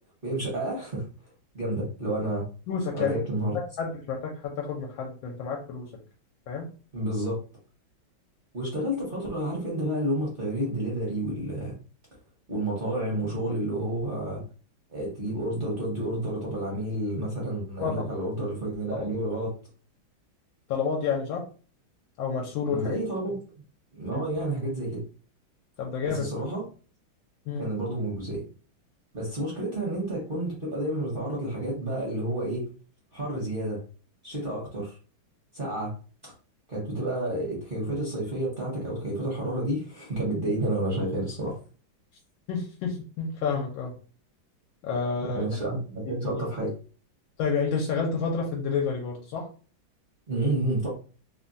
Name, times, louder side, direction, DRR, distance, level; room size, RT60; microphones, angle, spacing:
voice 1, 0.2-1.1 1.5-2.4 2.9-3.6 6.9-7.4 8.5-11.7 12.5-14.4 14.9-19.5 22.7-23.4 23.9-25.0 26.0-26.6 27.6-28.4 29.1-32.7 33.1-33.8 34.2-35.0 35.5-35.9 36.2-36.3 36.7-41.6 45.2-46.7 50.3-50.9, right 1 dB, 40° right, -5 dB, 0.8 m, -30 dB
voice 2, 2.7-3.2 3.8-5.9 6.5-6.7 17.8-18.1 18.9-19.1 20.7-21.4 22.2-23.0 24.1-24.3 25.8-26.3 27.5-27.6 42.5-43.9 44.8-45.4 47.4-49.5, left 5 dB, 80° left, -1 dB, 1.4 m, -29 dB
3.6 x 2.2 x 2.6 m, 0.38 s
omnidirectional pair, 2.2 m